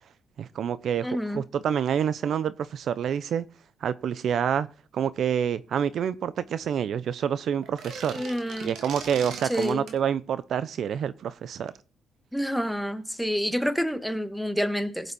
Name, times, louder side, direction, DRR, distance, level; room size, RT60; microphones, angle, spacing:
voice 1, 0.4-1.1 1.3-3.4 3.8-4.7 4.9-8.2 8.6-11.7, right 8 dB, 65° right, 0.5 m, -27 dB
voice 2, 1.0-1.5 8.1-8.7 9.4-9.9 12.3-15.1, equal, ahead, 1.3 m, -28 dB
sound 1, 7.6-10.0, right 5 dB, 80° right, 2.4 m, -40 dB
17.0 x 8.0 x 4.2 m
cardioid pair, 90°, 0 cm